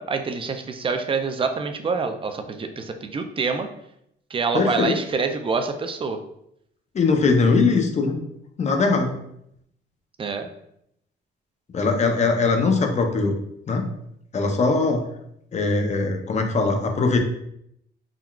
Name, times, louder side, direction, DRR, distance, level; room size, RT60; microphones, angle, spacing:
voice 1, 0.0-3.7 4.3-6.2 10.2-10.5, right 4 dB, 25° right, 7 dB, 0.3 m, -26 dB
voice 2, 4.5-5.0 6.9-8.2 8.6-9.2 11.7-13.3 13.7-13.9 14.3-15.1 15.5-17.2, left 4 dB, 35° left, 4 dB, 0.5 m, -21 dB
3.6 x 2.2 x 2.3 m, 0.76 s
cardioid pair, 90°, 20 cm